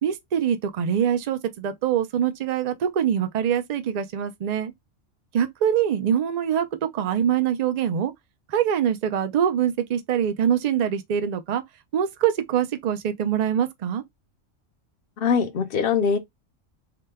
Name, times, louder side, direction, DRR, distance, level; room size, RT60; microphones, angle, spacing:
voice 1, 0.0-4.7 5.3-8.1 8.5-11.6 11.9-14.0, right 9 dB, 60° right, 0.4 m, -24 dB
voice 2, 15.2-16.2, left 6 dB, 55° left, 0.7 m, -22 dB
2.8 x 2.2 x 3.4 m
omnidirectional pair, 1.3 m